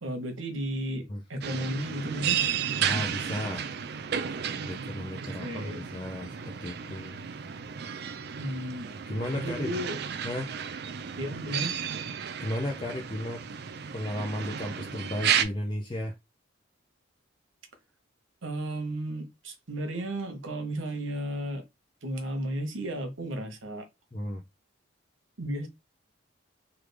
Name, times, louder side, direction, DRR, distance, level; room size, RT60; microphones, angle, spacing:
voice 1, 0.0-2.4 5.2-5.9 8.4-8.9 9.3-9.9 11.2-11.8 18.4-21.6 22.0-23.8 25.4-25.7, right 1 dB, 75° right, 1.0 m, -34 dB
sound 1, 1.4-15.4, right 8 dB, 50° right, 0.4 m, -33 dB
voice 2, 2.8-3.7 4.7-7.2 9.1-9.7 10.2-10.5 12.4-13.4 13.9-16.1 24.1-24.4, left 1 dB, 25° left, 0.4 m, -34 dB
3.3 x 2.3 x 3.3 m
head